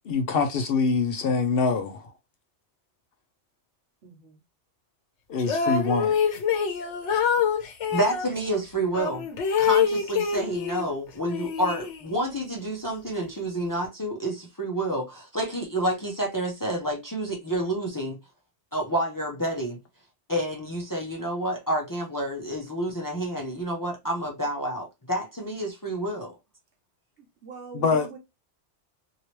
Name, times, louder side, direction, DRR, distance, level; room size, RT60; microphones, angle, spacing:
voice 1, 0.1-2.1 5.3-6.2 27.7-28.1, left 4 dB, 60° left, 0.7 m, -24 dB
voice 2, 4.0-4.4 27.4-28.2, right 5 dB, 75° right, 1.2 m, -42 dB
sound 1, 5.4-8.3 8.9-10.9 11.2-12.3, left 7 dB, 80° left, 1.1 m, -25 dB
voice 3, 7.9-9.2 9.6-18.2 18.7-19.8 20.3-26.4, right 1 dB, 25° left, 0.5 m, -29 dB
2.9 x 2.8 x 2.9 m
omnidirectional pair, 1.2 m